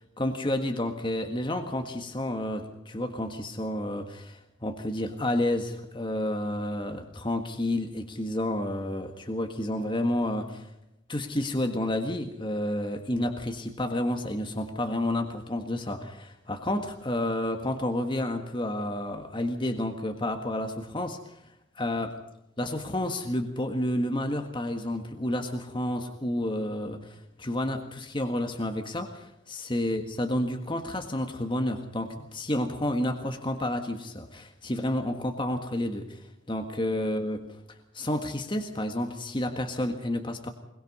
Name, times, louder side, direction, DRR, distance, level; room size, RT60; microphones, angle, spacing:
voice 1, 0.2-10.7 11.1-21.4 21.7-22.2 22.6-37.4 37.9-40.5, left 1 dB, 25° left, 5 dB, 1.6 m, -30 dB
22.0 x 21.5 x 5.5 m, 0.86 s
head